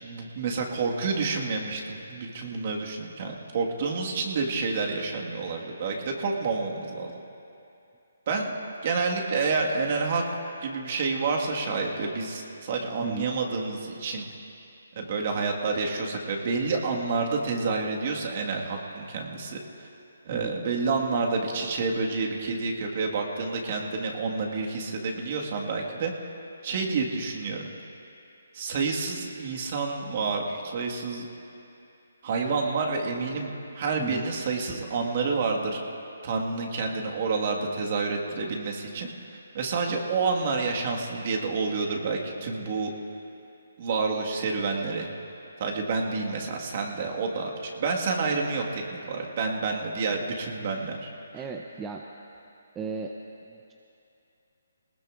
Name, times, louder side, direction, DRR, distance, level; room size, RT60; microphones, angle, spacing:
voice 1, 0.0-7.1 8.3-8.6 8.8-10.2 10.6-14.2 14.9-19.6 20.2-26.1 26.6-27.6 28.5-31.3 32.2-35.8 36.2-39.1 39.5-42.9 43.8-45.1 45.6-51.1, right 4 dB, 45° right, 0 dB, 1.7 m, -29 dB
voice 2, 51.3-52.1 52.8-53.2 53.4-53.7, right 5 dB, 15° right, 1 dB, 0.5 m, -36 dB
20.0 x 19.0 x 2.5 m, 2.7 s
hypercardioid pair, 155°, 0 cm